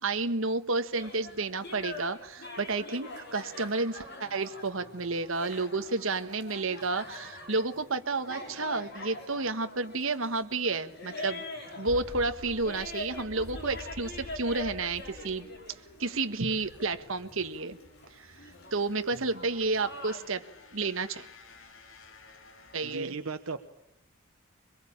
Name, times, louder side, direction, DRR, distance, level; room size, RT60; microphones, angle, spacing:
voice 1, 0.0-11.4 11.8-15.5 16.0-17.8 18.2-18.3 18.7-20.4 20.7-21.2 22.7-23.1, right 3 dB, 70° right, 8 dB, 1.4 m, -31 dB
sound 1, 0.9-20.2, left 2 dB, 50° left, 5.8 m, -44 dB
sound 2, 11.8-23.0, left 1 dB, 65° left, 2.6 m, -49 dB
voice 2, 19.1-19.5 22.8-23.7, right 4 dB, 85° right, 8 dB, 1.2 m, -38 dB
24.0 x 22.5 x 8.8 m, 0.78 s
head